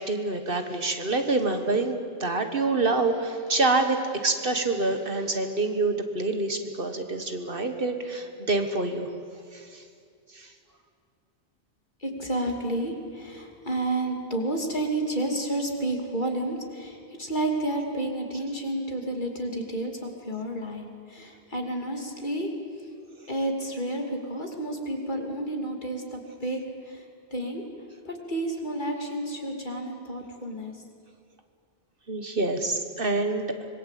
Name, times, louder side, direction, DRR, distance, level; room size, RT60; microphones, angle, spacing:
voice 1, 0.0-9.1 9.5-9.8 10.3-10.5 32.1-33.7, right 3 dB, 55° right, 6 dB, 1.8 m, -27 dB
voice 2, 12.0-22.5 22.8-22.9 23.3-27.0 27.3-27.6 28.0-30.8, right 1 dB, 45° left, 2 dB, 3.0 m, -31 dB
25.5 x 21.0 x 8.4 m, 2.3 s
omnidirectional pair, 1.1 m